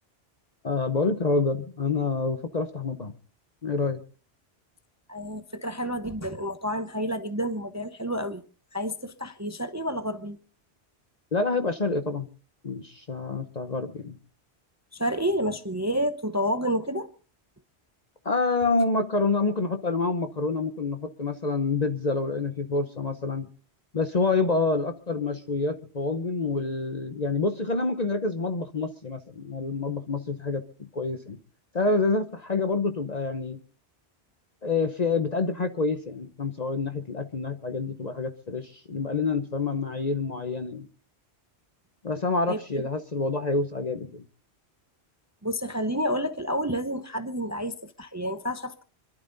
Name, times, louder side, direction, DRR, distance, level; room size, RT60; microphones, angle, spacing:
voice 1, 0.6-3.1 3.6-4.0 11.3-12.3 12.6-14.2 18.2-23.5 23.9-31.4 31.7-33.6 34.6-40.9 42.0-44.2, left 3 dB, 40° left, 1.0 m, -27 dB
voice 2, 5.1-8.4 8.7-10.4 14.9-17.1 42.5-42.6 45.4-48.8, equal, 15° right, 0.7 m, -29 dB
26.0 x 12.0 x 3.9 m
omnidirectional pair, 1.1 m